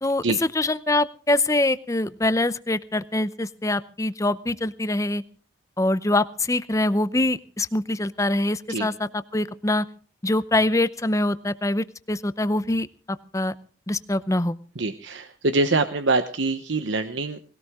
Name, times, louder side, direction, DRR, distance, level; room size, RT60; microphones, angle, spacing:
voice 1, 0.6-5.2 5.8-9.9 10.2-13.5 13.9-14.6, left 2 dB, 15° left, 15 dB, 0.7 m, -24 dB
voice 2, 14.7-17.4, right 3 dB, 75° right, 9 dB, 1.0 m, -24 dB
20.5 x 17.5 x 3.7 m, 0.40 s
head